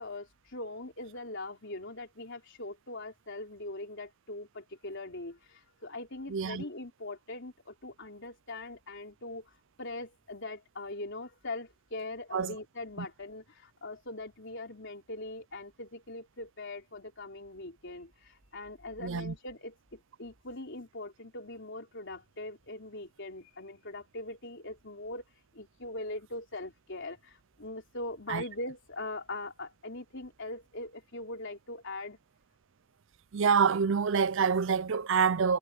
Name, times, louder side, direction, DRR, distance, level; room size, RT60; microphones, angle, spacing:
voice 1, 0.0-25.2 25.5-32.2, left 2 dB, 60° left, 4.1 m, -41 dB
voice 2, 6.3-6.6 12.3-12.6 13.0-13.1 19.0-19.3 28.3-28.4 33.3-35.6, right 6 dB, 60° right, 0.5 m, -27 dB
head